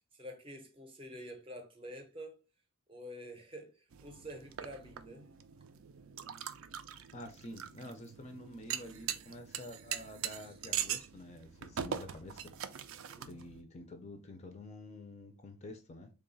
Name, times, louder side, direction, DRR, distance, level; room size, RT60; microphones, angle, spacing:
voice 1, 0.0-2.4 2.9-5.3 10.4-10.5 13.1-13.3, equal, 25° right, 0.6 m, -48 dB
sound 1, 3.9-13.6, right 9 dB, 65° right, 0.4 m, -42 dB
voice 2, 7.1-12.5 13.2-16.1, left 1 dB, 30° left, 0.4 m, -48 dB
3.4 x 2.3 x 3.8 m
head